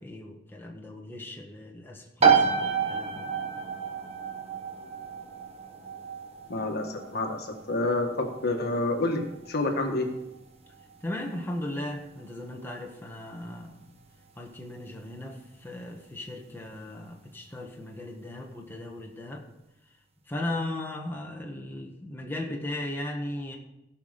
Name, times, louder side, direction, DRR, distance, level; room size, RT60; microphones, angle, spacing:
voice 1, 0.0-3.3 11.0-13.9 14.3-19.4 20.3-23.6, left 1 dB, 10° left, 0 dB, 1.4 m, -37 dB
sound 1, 2.2-16.7, right 6 dB, 35° right, 1.3 m, -31 dB
voice 2, 6.5-10.1, left 2 dB, 60° left, 3 dB, 1.5 m, -28 dB
16.5 x 5.9 x 5.1 m, 0.89 s
head